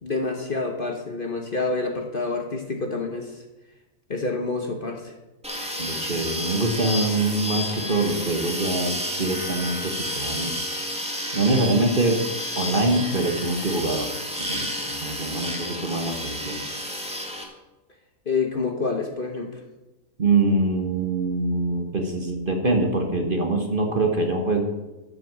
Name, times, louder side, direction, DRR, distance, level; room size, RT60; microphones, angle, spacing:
voice 1, 0.0-3.4 4.1-5.1 18.3-19.6, left 3 dB, 35° left, 3 dB, 1.3 m, -28 dB
sound 1, 5.4-17.4, equal, 5° right, 1.9 m, -31 dB
voice 2, 5.8-12.3 12.6-16.6 20.2-24.6, right 2 dB, 35° right, 3 dB, 1.4 m, -24 dB
13.0 x 6.3 x 7.4 m, 1.1 s
omnidirectional pair, 1.7 m